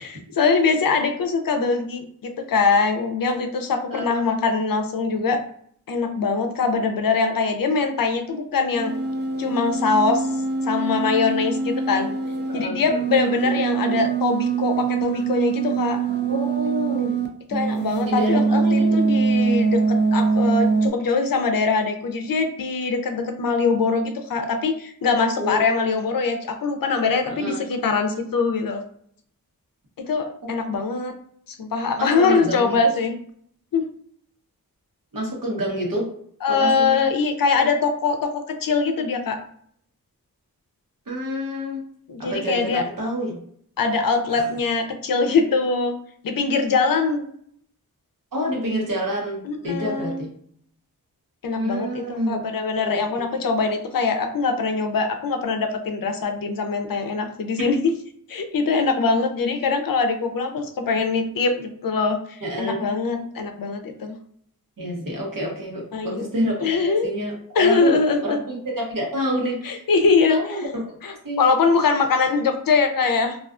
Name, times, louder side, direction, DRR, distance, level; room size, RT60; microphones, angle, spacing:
voice 1, 0.0-5.4 5.9-8.9 9.4-10.3 10.7-12.1 12.5-16.0 17.5-28.8 30.0-31.2 31.5-33.1 33.7-33.9 36.4-39.4 42.1-42.8 43.8-46.0 46.2-47.2 49.4-50.2 51.4-58.0 58.3-64.2 65.9-66.3 66.6-67.1 67.6-68.4 69.6-70.4 71.0-73.4, left 4 dB, 65° left, 5 dB, 0.5 m, -22 dB
sound 1, 8.7-17.3 17.5-20.9, right 4 dB, 30° right, 0.5 m, -23 dB
voice 2, 12.5-12.9 16.3-17.1 18.0-19.0 25.4-25.6 27.3-27.6 30.4-30.5 32.0-32.8 35.1-36.1 36.5-37.0 41.1-41.8 42.2-43.4 44.3-44.4 48.3-50.3 51.5-52.4 52.8-53.0 57.6-57.7 62.4-62.8 64.8-66.7 67.0-69.8 70.3-71.0 71.2-71.4, equal, 65° right, -2 dB, 1.0 m, -28 dB
2.4 x 2.3 x 2.4 m, 0.64 s
wide cardioid pair, 55°, 36 cm